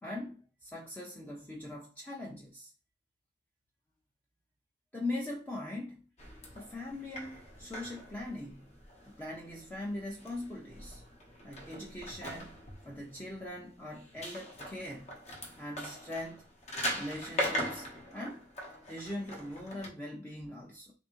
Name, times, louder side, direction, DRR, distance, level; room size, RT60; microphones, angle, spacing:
voice 1, 0.0-2.7 4.9-6.0 6.5-8.8 9.0-11.0 11.4-15.2 15.6-16.5 16.9-18.4 18.9-20.9, left 1 dB, 10° left, 0.4 m, -41 dB
sound 1, 6.2-19.9, equal, 40° left, 0.8 m, -41 dB
3.5 x 2.6 x 2.9 m
head